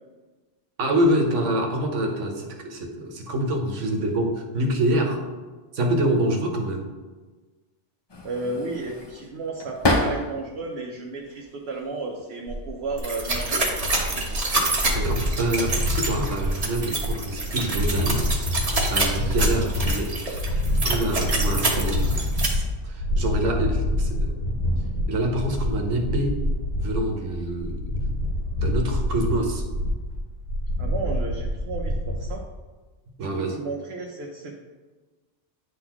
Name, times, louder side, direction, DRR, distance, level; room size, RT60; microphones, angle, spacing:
voice 1, 0.8-5.2 5.7-6.9 14.9-18.6 18.9-20.4 20.8-24.3 25.1-26.4 26.8-27.9 28.6-29.6 33.2-33.6, right 1 dB, 90° right, 3 dB, 1.2 m, -26 dB
sound 1, 8.1-10.6 11.0-11.9 12.8-13.1 13.5-14.3, left 1 dB, 30° left, 0.5 m, -29 dB
voice 2, 8.2-13.6 30.8-32.4 33.2-34.5, right 3 dB, 65° right, 0 dB, 0.9 m, -33 dB
sound 2, 12.5-32.3, left 1 dB, 75° left, 2.5 m, -27 dB
sound 3, 13.0-22.5, right 2 dB, 35° right, 1.0 m, -27 dB
9.8 x 3.9 x 2.9 m, 1.3 s
omnidirectional pair, 1.2 m